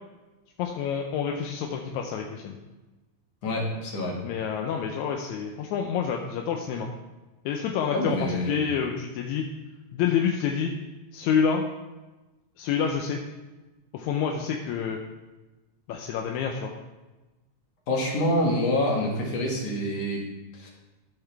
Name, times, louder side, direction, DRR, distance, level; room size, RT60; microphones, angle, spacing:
voice 1, 0.6-2.6 4.2-6.9 7.5-9.5 9.9-10.7 11.1-11.6 12.6-13.2 13.9-15.0 15.9-16.7, left 7 dB, 85° left, 2 dB, 2.0 m, -28 dB
voice 2, 3.4-4.2 7.9-8.5 17.9-20.2 20.5-20.7, left 1 dB, 60° left, -2 dB, 2.8 m, -26 dB
13.5 x 5.8 x 3.4 m, 1.1 s
omnidirectional pair, 3.3 m